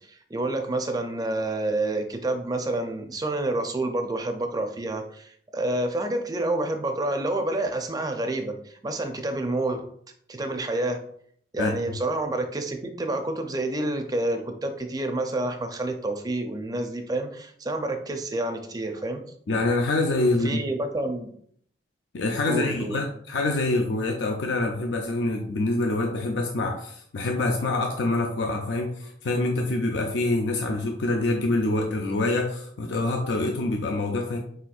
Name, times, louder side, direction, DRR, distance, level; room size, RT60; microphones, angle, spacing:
voice 1, 0.1-9.9 10.3-11.0 11.5-19.2 20.4-21.3 22.5-23.0, right 2 dB, 20° right, 5 dB, 0.5 m, -28 dB
voice 2, 19.5-20.6 22.1-34.4, left 2 dB, 85° left, 3 dB, 0.5 m, -26 dB
4.4 x 4.3 x 2.4 m, 0.62 s
head